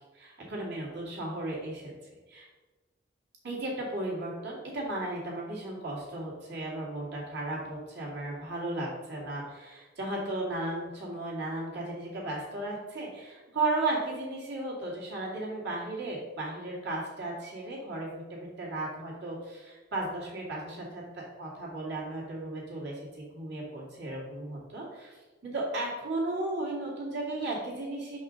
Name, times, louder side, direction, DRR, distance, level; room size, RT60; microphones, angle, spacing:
voice 1, 0.1-1.9 2.3-2.5 3.4-28.2, right 2 dB, 60° right, -4 dB, 2.2 m, -35 dB
6.3 x 5.3 x 3.8 m, 1.3 s
head